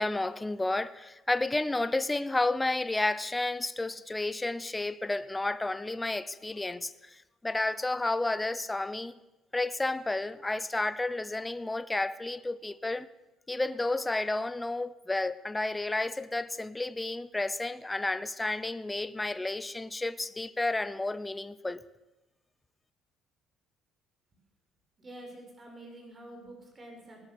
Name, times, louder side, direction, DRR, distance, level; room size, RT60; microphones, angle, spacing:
voice 1, 0.0-9.1 9.5-13.1 13.5-21.8, left 2 dB, 10° left, 0.8 m, -31 dB
voice 2, 25.0-27.2, right 1 dB, 20° right, 6.1 m, -47 dB
20.0 x 18.5 x 7.0 m
cardioid pair, 165°, 0 cm